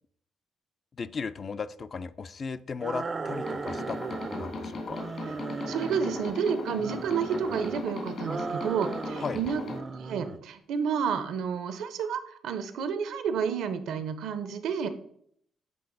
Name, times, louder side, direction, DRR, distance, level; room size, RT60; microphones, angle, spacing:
voice 1, 1.0-5.0 9.2-9.4, left 5 dB, 40° left, 13 dB, 0.3 m, -36 dB
sound 1, 2.8-4.5 4.9-6.4 6.7-7.8 8.2-9.4 9.7-10.4, right 4 dB, 35° right, 0.4 m, -37 dB
sound 2, 3.3-9.8, left 2 dB, 60° left, 1.8 m, -37 dB
voice 2, 5.6-9.6 9.9-14.9, right 6 dB, 80° right, 10 dB, 0.6 m, -30 dB
7.7 x 3.4 x 3.8 m, 0.65 s
cardioid pair, 90°, 0 cm